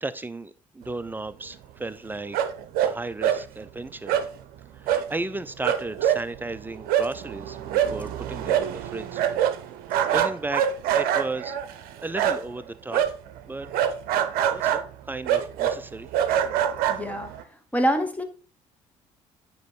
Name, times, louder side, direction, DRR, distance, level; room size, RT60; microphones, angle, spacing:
voice 1, 0.0-2.4 2.8-4.2 4.7-9.2 9.9-10.6 10.9-11.6 12.0-13.0 13.5-13.7 14.5-16.1, right 2 dB, 10° right, 14 dB, 0.6 m, -34 dB
sound 1, 2.3-2.9 3.2-3.4 4.1-4.3 4.9-5.1 5.3-5.4 5.6-12.6 12.9-17.4, right 10 dB, 65° right, 0.7 m, -25 dB
voice 2, 16.9-18.2, equal, 10° left, 6 dB, 1.4 m, -26 dB
9.3 x 3.1 x 4.4 m, 0.37 s
hypercardioid pair, 50°, 17 cm